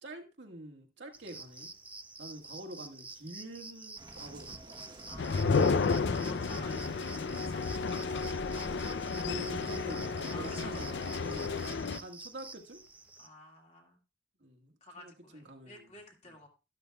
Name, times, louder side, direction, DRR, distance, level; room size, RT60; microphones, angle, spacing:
voice 1, 0.0-1.7 2.2-5.1 9.2-11.6 12.0-12.8 14.4-15.9 16.2-16.4, right 1 dB, 75° right, 2 dB, 1.6 m, -46 dB
sound 1, 1.1-13.3, right 3 dB, 10° right, 0.6 m, -48 dB
sound 2, 4.0-11.7, right 1 dB, 25° right, 1.0 m, -50 dB
voice 2, 5.1-8.0 10.3-11.4 13.2-14.0 14.8-16.5, left 2 dB, 35° left, 1 dB, 2.1 m, -52 dB
sound 3, 5.2-12.0, left 4 dB, 70° left, 0.5 m, -32 dB
12.0 x 12.0 x 2.3 m, 0.29 s
head